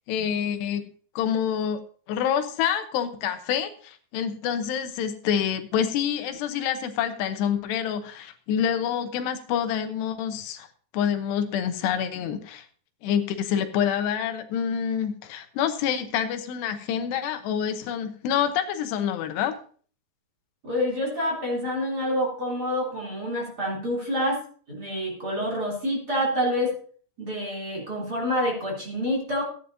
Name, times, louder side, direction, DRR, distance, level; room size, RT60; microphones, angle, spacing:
voice 1, 0.1-0.9 1.2-1.8 2.1-10.7 10.9-12.7 13.0-19.6, left 8 dB, 90° left, 8 dB, 3.2 m, -27 dB
voice 2, 20.6-26.8 27.2-29.4, equal, 25° right, -2 dB, 3.4 m, -27 dB
16.0 x 9.5 x 2.7 m, 0.44 s
omnidirectional pair, 4.7 m